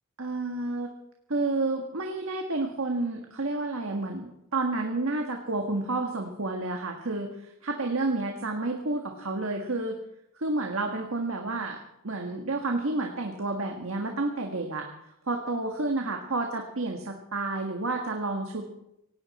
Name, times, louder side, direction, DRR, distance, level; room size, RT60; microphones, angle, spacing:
voice 1, 0.2-0.9 1.3-9.9 10.4-11.8 12.0-14.9 15.3-18.7, right 2 dB, 65° right, 2 dB, 1.6 m, -30 dB
18.0 x 17.5 x 4.3 m, 0.83 s
head